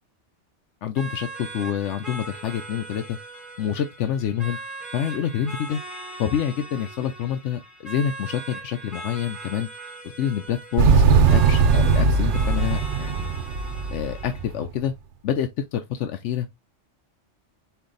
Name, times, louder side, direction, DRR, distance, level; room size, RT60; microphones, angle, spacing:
voice 1, 0.8-3.2 3.6-4.6 4.9-5.8 6.2-9.7 10.2-13.3 13.9-14.9 15.2-16.5, left 9 dB, 75° left, 0.9 m, -27 dB
sound 1, 1.0-14.5, right 2 dB, ahead, 0.9 m, -39 dB
Motorcycle, 10.8-14.7, right 5 dB, 75° right, 0.9 m, -19 dB
4.5 x 2.9 x 3.8 m
omnidirectional pair, 1.2 m